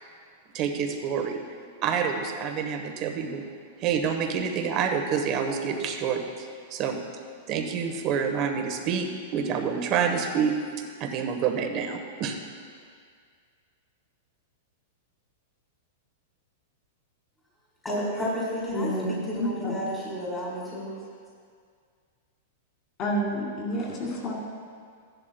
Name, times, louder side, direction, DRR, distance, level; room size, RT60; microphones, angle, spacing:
voice 1, 0.5-1.4 1.8-3.4 3.8-7.0 7.5-10.6 11.0-12.4, right 6 dB, 30° right, 4 dB, 1.0 m, -27 dB
voice 2, 17.8-21.0, equal, 10° left, -7 dB, 1.9 m, -31 dB
voice 3, 18.7-19.1 19.4-19.7 23.0-24.3, equal, 30° left, -2 dB, 2.1 m, -29 dB
15.0 x 11.0 x 2.2 m, 2.1 s
supercardioid pair, 165°, 0 cm